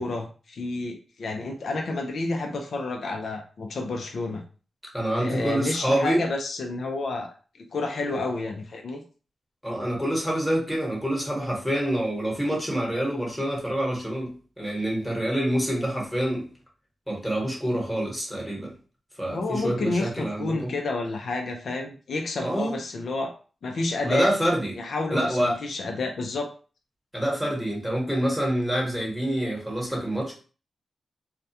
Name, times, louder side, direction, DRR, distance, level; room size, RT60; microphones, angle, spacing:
voice 1, 0.0-4.4 5.2-9.0 19.3-23.3 23.6-24.3 24.8-26.5, left 2 dB, 70° left, 3 dB, 0.4 m, -30 dB
voice 2, 4.9-6.3 9.6-16.4 17.1-18.7 19.2-20.7 22.4-22.8 24.0-24.7 25.1-25.6 27.1-30.3, right 1 dB, ahead, -3 dB, 1.1 m, -26 dB
2.3 x 2.1 x 2.7 m, 0.37 s
cardioid pair, 75°, 0 cm